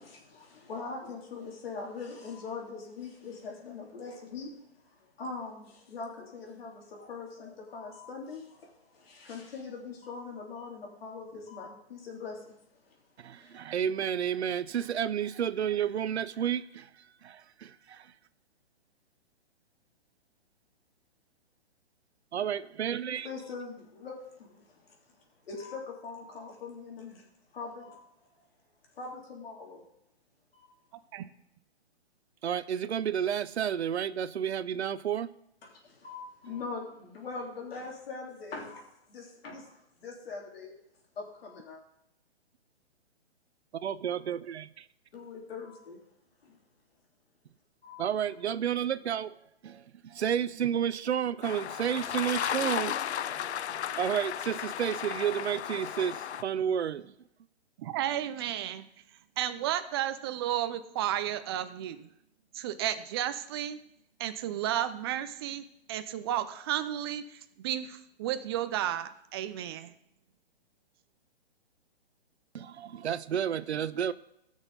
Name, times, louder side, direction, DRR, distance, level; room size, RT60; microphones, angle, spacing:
voice 1, 0.0-4.5 4.9-12.6 12.8-13.0 13.4-13.6 23.2-25.0 25.4-27.2 27.5-28.1 28.9-29.8 30.5-30.7 35.6-40.7 41.1-41.8 45.1-46.0 46.4-46.5 47.8-48.0, left 4 dB, 65° left, 3.3 m, -42 dB
voice 2, 13.2-16.9 17.2-18.1 22.3-23.3 32.4-35.3 43.8-44.9 48.0-49.3 49.6-53.0 53.3-53.5 54.0-57.1 72.5-74.1, right 9 dB, 85° right, 0.6 m, -31 dB
sound 1, 51.4-56.4, left 10 dB, 90° left, 0.5 m, -34 dB
voice 3, 57.8-58.8 59.4-62.1 62.5-63.8 64.2-69.9, right 11 dB, 25° right, 0.5 m, -33 dB
16.0 x 6.4 x 4.0 m
hypercardioid pair, 145°, 32 cm